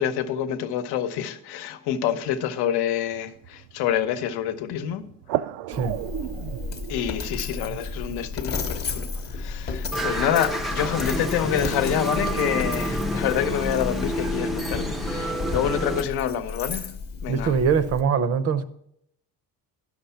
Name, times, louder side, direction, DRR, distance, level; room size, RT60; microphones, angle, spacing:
voice 1, 0.0-5.1 6.9-16.9 17.2-17.5, left 9 dB, 70° left, 0.9 m, -27 dB
sound 1, 3.1-10.1, right 13 dB, 80° right, 0.5 m, -36 dB
Coin (dropping), 5.7-18.0, left 4 dB, 25° left, 0.8 m, -33 dB
sound 2, 9.9-16.0, equal, ahead, 0.5 m, -29 dB
voice 2, 17.3-18.6, right 6 dB, 40° right, 0.6 m, -22 dB
11.0 x 6.5 x 5.6 m
cardioid pair, 165°, 40 cm